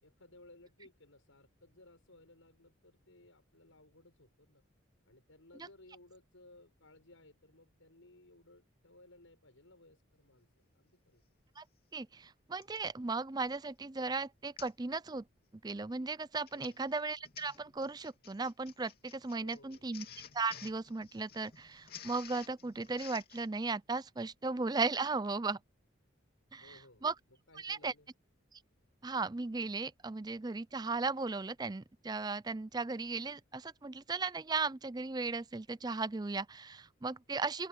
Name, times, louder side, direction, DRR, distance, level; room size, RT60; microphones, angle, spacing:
voice 1, 0.0-4.6 5.0-11.2 16.5-16.8 19.4-19.9 26.6-28.1, left 2 dB, 85° left, 6.6 m, -60 dB
Printer, 11.4-11.5 12.6-12.9 13.5-13.7 14.0-14.1 14.6-14.8 15.2-15.4 16.2-23.5, left 9 dB, 50° left, 2.8 m, -53 dB
voice 2, 11.9-15.2 15.6-20.1 20.3-25.6 26.5-27.1 27.6-27.9 28.5-28.6 29.0-37.7, right 3 dB, 20° right, 0.4 m, -36 dB
open air
head